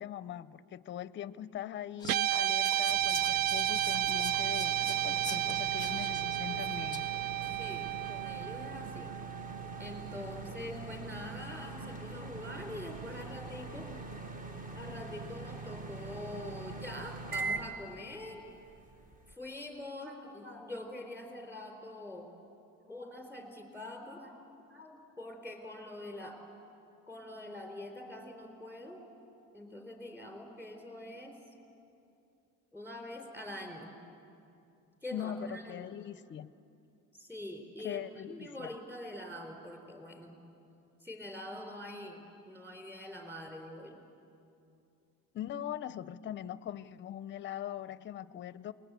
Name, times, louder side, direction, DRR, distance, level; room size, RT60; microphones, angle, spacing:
voice 1, 0.0-7.1 35.1-36.5 37.8-38.7 45.3-48.7, left 10 dB, 35° left, 16 dB, 0.6 m, -41 dB
Whispering, 2.0-7.3, left 5 dB, 10° left, 0.9 m, -46 dB
Guitar, 2.0-10.5, right 14 dB, 75° right, 0.5 m, -32 dB
sound 1, 2.9-19.3, right 3 dB, 25° right, 1.1 m, -43 dB
voice 2, 7.4-9.2 9.8-13.9 14.8-18.4 19.3-22.3 22.9-24.3 24.7-26.4 27.1-29.0 29.5-31.4 32.7-33.9 35.0-36.0 37.1-40.4 41.0-44.0, left 1 dB, 5° right, 2 dB, 3.9 m, -44 dB
28.0 x 20.5 x 8.3 m, 2.7 s
cardioid pair, 145°, 34 cm